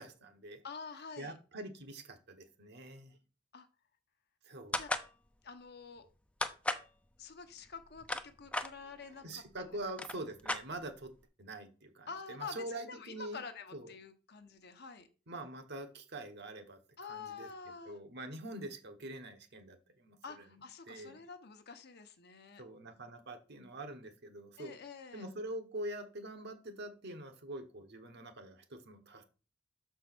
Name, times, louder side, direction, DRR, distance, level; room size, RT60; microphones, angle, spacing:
voice 1, 0.0-0.6 1.2-3.2 4.4-4.8 8.9-11.1 11.4-13.4 13.7-13.9 15.3-17.5 17.8-21.2 22.6-24.8 25.1-29.2, right 1 dB, 60° right, 6 dB, 1.3 m, -45 dB
voice 2, 0.6-1.3 3.5-3.7 4.7-4.9 5.4-6.1 7.2-9.7 12.1-15.1 17.0-18.0 20.2-22.6 24.6-25.3, left 5 dB, 55° left, 8 dB, 0.9 m, -48 dB
sound 1, 4.7-5.1 6.4-6.9 7.8-8.7 9.5-9.6 9.9-11.1, left 1 dB, 5° left, 0.5 m, -35 dB
6.4 x 4.6 x 6.1 m, 0.35 s
head